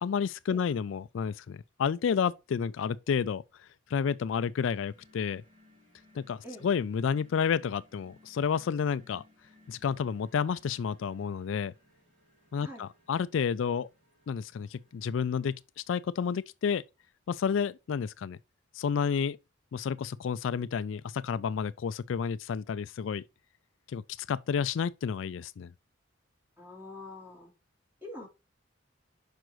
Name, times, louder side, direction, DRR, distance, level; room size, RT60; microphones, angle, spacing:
voice 1, 0.0-3.4 3.9-5.4 6.1-9.2 9.7-11.7 12.5-13.9 14.3-16.8 17.3-18.4 18.7-19.4 19.7-23.2 23.9-24.0 24.3-25.7, left 6 dB, 75° left, 0.4 m, -30 dB
sound 1, 4.6-15.6, left 1 dB, 40° right, 3.3 m, -63 dB
voice 2, 26.6-27.5 28.0-28.3, left 1 dB, 10° right, 2.9 m, -45 dB
6.1 x 5.1 x 4.6 m
head